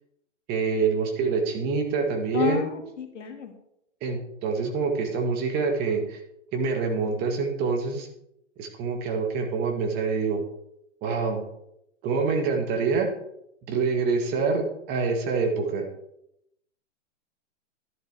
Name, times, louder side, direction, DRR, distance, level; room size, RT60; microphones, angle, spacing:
voice 1, 0.5-2.6 4.0-6.2 6.5-8.1 8.6-10.4 11.0-11.4 12.0-13.1 13.7-15.8, right 4 dB, 25° right, 4 dB, 1.7 m, -26 dB
voice 2, 2.3-3.5, left 7 dB, 75° left, 4 dB, 2.1 m, -30 dB
11.0 x 10.5 x 3.4 m, 0.79 s
hypercardioid pair, 125°, 37 cm